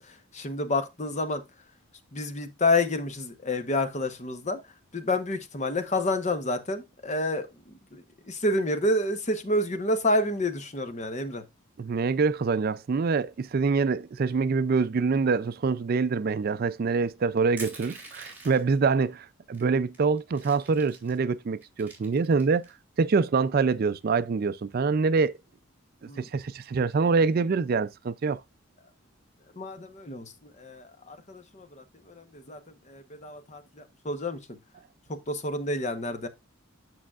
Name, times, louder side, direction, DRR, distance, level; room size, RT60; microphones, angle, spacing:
voice 1, 0.0-1.4 2.1-4.6 4.9-11.4 26.1-26.3 29.6-32.6 32.9-34.4 35.1-36.3, left 2 dB, 35° left, 0.9 m, -29 dB
voice 2, 11.8-22.6 23.0-25.3 26.2-28.4, right 4 dB, 45° right, 0.3 m, -25 dB
Crushing, 17.6-18.8 19.5-19.6 19.9-21.2 21.6-22.7, right 3 dB, 10° right, 2.6 m, -44 dB
8.7 x 6.2 x 2.3 m
head